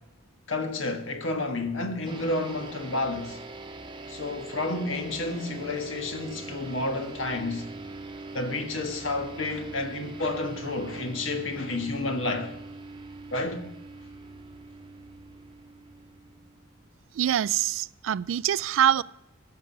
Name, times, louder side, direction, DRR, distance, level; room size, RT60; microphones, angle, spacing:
voice 1, 0.5-3.4 4.1-7.6 8.3-12.5 13.3-13.7, left 2 dB, 70° left, 1.5 m, -30 dB
sound 1, 2.1-16.9, right 3 dB, 25° right, 0.9 m, -42 dB
voice 2, 17.2-19.0, right 10 dB, 70° right, 0.3 m, -24 dB
14.5 x 5.9 x 6.0 m
head